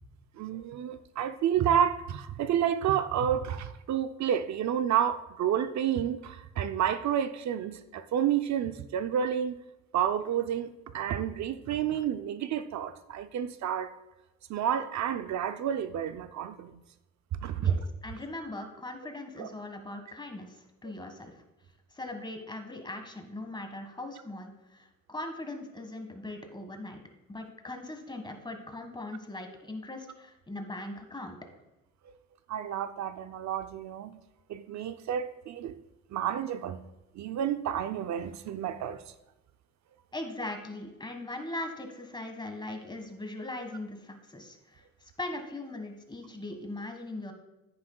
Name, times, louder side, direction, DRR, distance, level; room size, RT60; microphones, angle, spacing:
voice 1, 0.4-9.6 9.9-13.9 14.5-16.8 17.4-17.7 19.4-19.5 32.5-34.2 34.5-35.7 36.1-36.8 37.1-39.0, right 9 dB, 65° right, 0.6 m, -30 dB
voice 2, 17.6-21.3 21.9-27.0 27.3-31.4 40.1-47.3, left 2 dB, 15° left, 1.5 m, -40 dB
9.8 x 9.6 x 2.3 m
cardioid pair, 90°, 30 cm